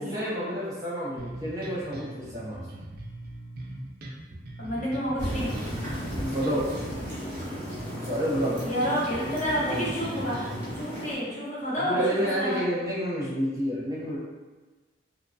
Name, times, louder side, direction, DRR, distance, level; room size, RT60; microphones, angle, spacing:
voice 1, 0.0-2.6 6.2-6.6 8.0-8.6 9.6-9.9 11.8-14.2, equal, 15° right, -8 dB, 0.7 m, -29 dB
sound 1, 1.2-10.8, right 1 dB, 50° right, 0.4 m, -40 dB
voice 2, 4.6-5.5 8.6-10.5 10.7-12.6, equal, 40° left, -8 dB, 0.8 m, -29 dB
sound 2, 5.2-11.1, equal, 10° left, 0.9 m, -35 dB
2.8 x 2.2 x 2.7 m, 1.3 s
head